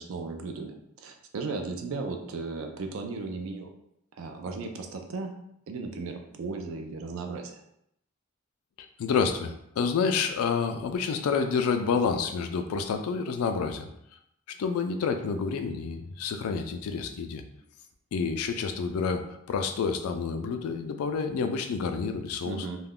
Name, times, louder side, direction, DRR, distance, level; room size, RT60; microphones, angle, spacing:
voice 1, 0.0-3.7 4.2-5.3 5.7-7.6 22.4-22.8, right 3 dB, 65° right, 4 dB, 0.4 m, -36 dB
voice 2, 8.8-13.9 14.5-17.4 18.1-22.7, left 5 dB, 80° left, 7 dB, 0.3 m, -29 dB
2.3 x 2.1 x 3.5 m, 0.76 s
head